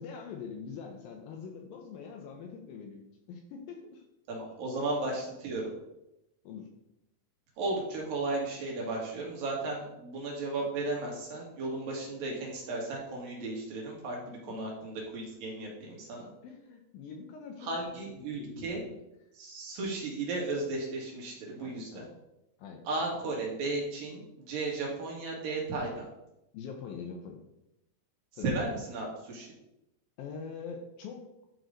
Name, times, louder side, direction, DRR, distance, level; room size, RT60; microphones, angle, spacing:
voice 1, 0.0-4.1 4.7-4.9 6.4-6.7 14.2-14.7 16.4-17.7 18.1-19.0 21.6-22.2 22.6-22.9 26.5-27.4 28.4-28.5 30.2-31.3, left 6 dB, 75° left, 3 dB, 2.3 m, -44 dB
voice 2, 4.3-5.7 7.6-16.3 17.6-18.8 19.3-22.0 22.9-26.1 28.4-29.5, right 2 dB, 60° right, -2 dB, 3.5 m, -35 dB
11.0 x 4.7 x 5.2 m, 0.88 s
omnidirectional pair, 4.7 m